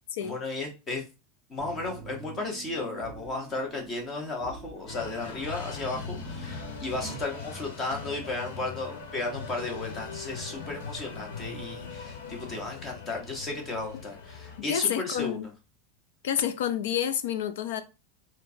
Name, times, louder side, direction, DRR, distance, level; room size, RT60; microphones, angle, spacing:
voice 1, 0.2-1.0 1.5-15.4, left 3 dB, 15° left, 0.7 m, -34 dB
sound 1, 1.6-7.2, right 6 dB, 40° right, 0.5 m, -46 dB
sound 2, 4.9-14.6, left 4 dB, 90° left, 0.9 m, -40 dB
voice 2, 14.7-15.5 16.2-17.8, left 9 dB, 75° left, 0.4 m, -28 dB
4.8 x 2.0 x 2.6 m
supercardioid pair, 175°, 0 cm